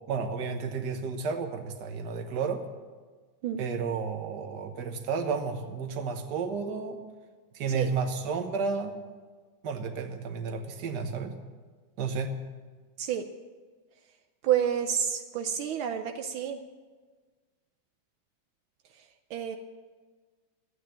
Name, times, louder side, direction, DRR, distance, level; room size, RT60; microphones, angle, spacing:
voice 1, 0.1-2.6 3.6-7.0 7.5-9.0 9.6-11.3 12.0-12.3, right 5 dB, 55° right, 6 dB, 1.7 m, -32 dB
voice 2, 14.4-16.6 19.3-19.6, right 9 dB, 80° right, 6 dB, 1.5 m, -29 dB
13.5 x 9.0 x 8.9 m, 1.4 s
omnidirectional pair, 2.2 m